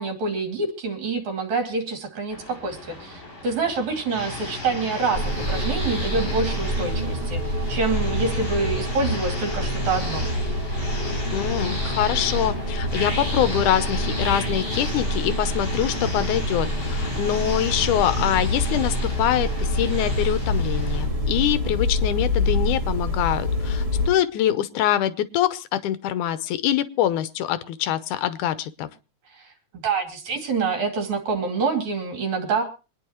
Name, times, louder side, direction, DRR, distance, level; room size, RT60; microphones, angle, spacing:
voice 1, 0.0-10.3 29.3-29.5 29.8-32.6, right 4 dB, 65° right, 4 dB, 4.0 m, -26 dB
sound 1, 2.3-21.1, left 2 dB, 30° left, 7.7 m, -34 dB
sound 2, 5.1-24.1, left 1 dB, 15° right, 1.4 m, -26 dB
voice 2, 11.3-28.9, left 11 dB, 80° left, 14 dB, 2.3 m, -24 dB
26.0 x 10.0 x 3.0 m, 0.32 s
omnidirectional pair, 3.6 m